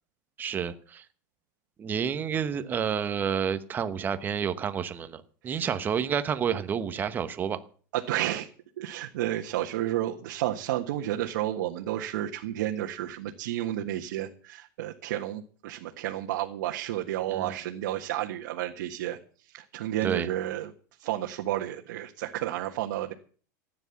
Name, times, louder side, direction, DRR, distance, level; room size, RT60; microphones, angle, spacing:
voice 1, 0.4-1.0 1.8-7.6 17.3-17.6 20.0-20.3, right 7 dB, 20° right, 10 dB, 1.0 m, -29 dB
voice 2, 7.9-8.5 8.8-19.2 19.5-20.7 21.0-23.1, right 13 dB, 65° right, 1 dB, 1.7 m, -31 dB
15.0 x 9.8 x 7.2 m, 0.43 s
supercardioid pair, 165°, 10 cm